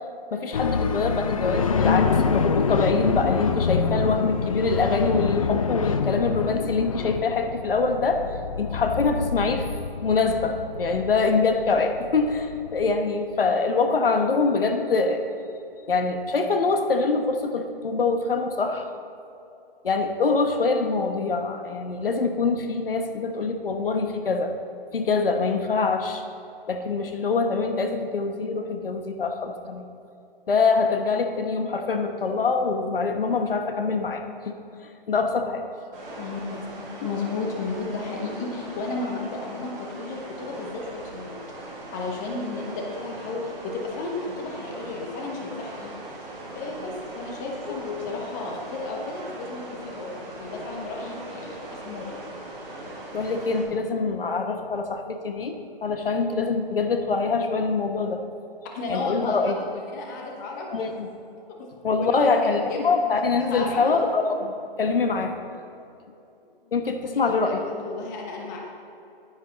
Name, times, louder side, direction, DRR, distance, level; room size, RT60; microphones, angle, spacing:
voice 1, 0.3-8.2 8.6-9.7 10.0-15.6 15.9-18.9 19.8-24.5 24.9-26.2 26.7-29.9 30.5-34.5 35.1-35.6 47.8-48.1 53.1-58.2 58.9-59.6 60.7-61.1 61.8-65.3 66.7-67.6, left 4 dB, 70° left, 6 dB, 1.1 m, -24 dB
sound 1, 0.5-13.0, left 5 dB, 35° left, 0.5 m, -26 dB
sound 2, 35.9-53.6, right 1 dB, 15° right, 2.0 m, -40 dB
voice 2, 36.2-41.4 41.9-45.9 46.3-52.2 58.7-60.9 61.6-61.7 62.0-64.0 67.1-68.6, left 3 dB, 20° left, 0 dB, 1.0 m, -33 dB
10.5 x 9.8 x 4.1 m, 2.7 s
hypercardioid pair, 155°, 29 cm